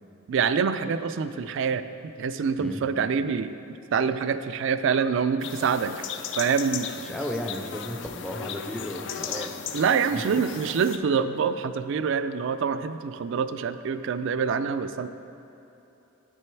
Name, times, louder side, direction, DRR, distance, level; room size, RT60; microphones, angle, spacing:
voice 1, 0.3-5.9 6.4-6.9 9.3-9.5 9.7-15.1, right 6 dB, 65° right, 11 dB, 0.3 m, -26 dB
sound 1, 5.4-11.0, left 7 dB, 60° left, 0.4 m, -36 dB
voice 2, 7.0-9.5 10.1-10.2, left 1 dB, 5° left, 2 dB, 0.4 m, -34 dB
9.0 x 6.2 x 4.5 m, 3.0 s
head